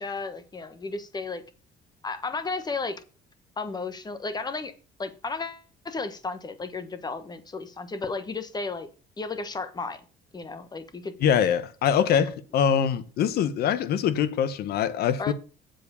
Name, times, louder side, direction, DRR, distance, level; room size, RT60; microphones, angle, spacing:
voice 1, 0.0-1.4 2.0-3.0 3.6-4.7 5.0-8.9 9.2-10.0 10.3-11.1 15.2-15.3, left 3 dB, 25° left, 1.2 m, -33 dB
voice 2, 11.2-15.3, left 8 dB, 70° left, 1.0 m, -23 dB
7.7 x 4.7 x 6.9 m
cardioid pair, 110°, 17 cm